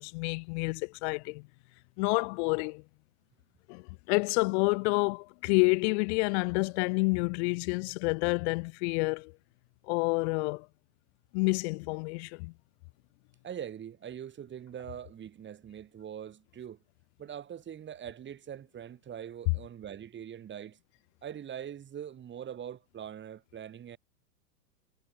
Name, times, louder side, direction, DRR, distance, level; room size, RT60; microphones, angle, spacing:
voice 1, 0.0-1.5 2.0-2.8 3.7-9.3 9.9-10.7 11.3-12.5, left 30 dB, 45° left, 1.2 m, -29 dB
voice 2, 13.4-16.8 17.2-20.8 21.2-24.0, right 9 dB, 25° right, 5.8 m, -42 dB
hypercardioid pair, 115°, 46 cm